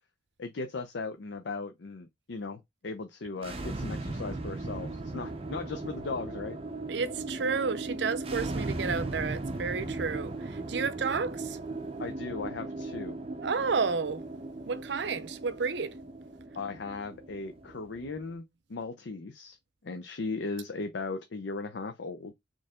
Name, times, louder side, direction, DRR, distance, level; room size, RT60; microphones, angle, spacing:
voice 1, 0.4-6.6 12.0-13.2 16.5-18.4 18.7-19.6 19.8-22.3, left 3 dB, 80° left, 0.6 m, -37 dB
sound 1, 3.3-18.3, right 2 dB, 30° right, 0.7 m, -37 dB
voice 2, 6.9-11.6 13.4-14.2 14.7-16.0, right 5 dB, 75° right, 0.6 m, -31 dB
4.3 x 3.2 x 3.6 m
head